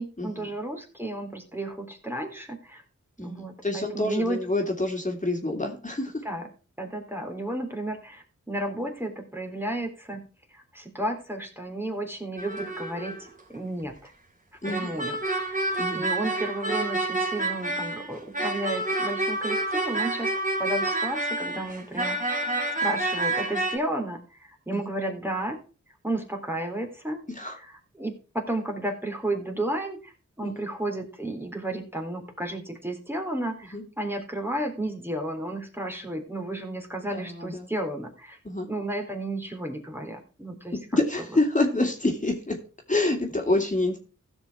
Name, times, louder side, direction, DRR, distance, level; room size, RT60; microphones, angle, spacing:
voice 1, 0.0-2.8 3.2-4.4 6.2-6.5 6.8-10.2 10.5-13.2 13.5-14.1 14.6-15.2 15.4-20.3 20.6-22.4 22.8-25.6 26.0-27.2 27.6-30.1 30.4-38.4 38.7-41.0, right 1 dB, 5° right, 2 dB, 3.5 m, -32 dB
voice 2, 3.2-6.2 14.6-15.0 15.8-16.0 24.7-24.8 27.3-27.6 30.4-30.6 33.7-33.8 37.1-37.7 38.4-38.7 40.9-42.6 42.9-44.0, left 2 dB, 25° left, 1 dB, 3.2 m, -27 dB
sound 1, 12.4-13.3 14.6-23.8, right 2 dB, 25° right, 3.8 m, -28 dB
15.5 x 6.2 x 4.6 m, 0.34 s
cardioid pair, 45°, 29 cm